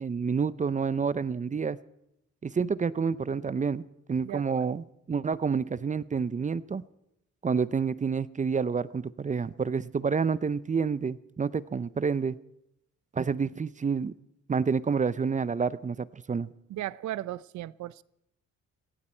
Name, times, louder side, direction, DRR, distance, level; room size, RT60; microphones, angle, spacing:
voice 1, 0.0-1.8 2.4-3.8 4.1-6.8 7.4-12.4 13.1-14.1 14.5-16.5, right 5 dB, 25° right, 0.6 m, -28 dB
voice 2, 4.2-4.7 16.7-18.0, right 14 dB, 70° right, 0.6 m, -36 dB
18.0 x 16.5 x 4.4 m
cardioid pair, 90°, 30 cm